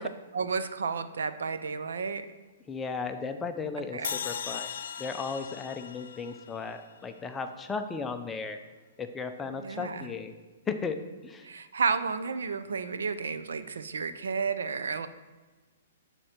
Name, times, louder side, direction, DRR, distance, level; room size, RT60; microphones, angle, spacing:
voice 1, 0.0-2.3 3.9-4.2 9.4-10.1 11.4-15.1, right 5 dB, 90° right, 11 dB, 0.6 m, -32 dB
voice 2, 2.7-4.7 5.0-8.6 9.0-10.3 10.7-11.0 11.2-11.5, left 5 dB, 10° left, 6 dB, 0.5 m, -35 dB
sound 1, 4.0-7.3, left 7 dB, 75° left, 0.4 m, -38 dB
11.5 x 4.5 x 4.4 m, 1.3 s
hypercardioid pair, 150°, 0 cm